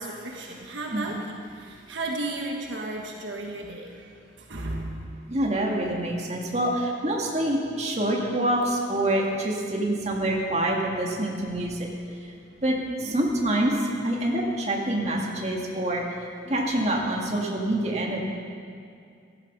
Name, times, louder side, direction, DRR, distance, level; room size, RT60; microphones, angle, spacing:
voice 1, 0.0-4.1 4.5-5.0, right 2 dB, 65° right, 0 dB, 1.4 m, -34 dB
voice 2, 5.3-11.9 12.6-13.7 14.0-16.0 16.5-18.2, right 1 dB, 35° right, -1 dB, 1.9 m, -26 dB
17.0 x 13.5 x 5.4 m, 2.3 s
head